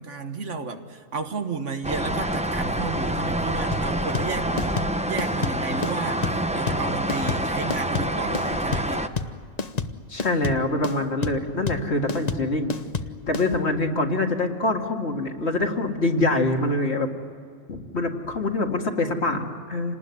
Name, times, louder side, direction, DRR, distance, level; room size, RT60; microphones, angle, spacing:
voice 1, 0.0-4.8 5.1-9.1, right 4 dB, 65° right, 6 dB, 1.8 m, -32 dB
sound 1, 1.8-9.1, right 1 dB, 5° right, 0.8 m, -27 dB
sound 2, 3.7-13.5, left 4 dB, 35° left, 0.9 m, -29 dB
voice 2, 10.1-12.7 13.3-17.1 17.7-20.0, left 2 dB, 55° left, 2 dB, 2.2 m, -25 dB
27.5 x 19.5 x 9.6 m, 2.1 s
omnidirectional pair, 1.3 m